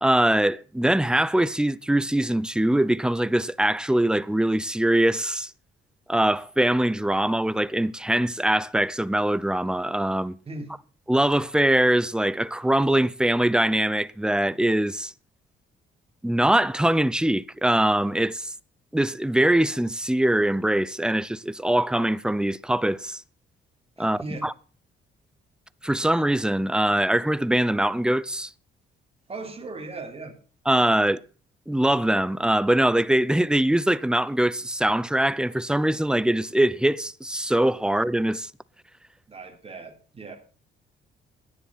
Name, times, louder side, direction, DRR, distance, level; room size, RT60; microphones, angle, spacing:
voice 1, 0.0-5.5 6.1-10.4 11.1-15.1 16.2-18.5 18.9-23.2 24.0-24.5 25.8-28.5 30.7-31.2 31.7-38.5, right 1 dB, 5° right, 0.6 m, -22 dB
voice 2, 24.0-24.5 29.3-30.4 39.3-40.4, right 3 dB, 30° right, 3.6 m, -38 dB
15.5 x 10.0 x 5.8 m
cardioid pair, 90°, 20 cm